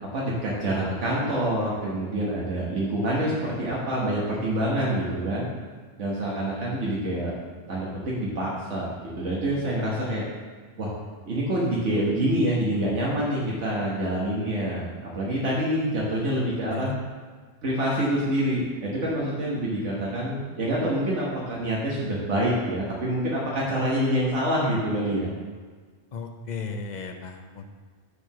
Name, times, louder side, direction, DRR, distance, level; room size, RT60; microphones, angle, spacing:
voice 1, 0.0-5.5 6.0-7.3 7.7-8.9 9.2-10.2 10.8-10.9 11.3-16.9 17.6-25.3, right 1 dB, 85° right, -5 dB, 1.6 m, -26 dB
voice 2, 26.1-27.7, left 4 dB, 45° left, 5 dB, 0.7 m, -35 dB
6.6 x 4.7 x 6.0 m, 1.5 s
omnidirectional pair, 1.2 m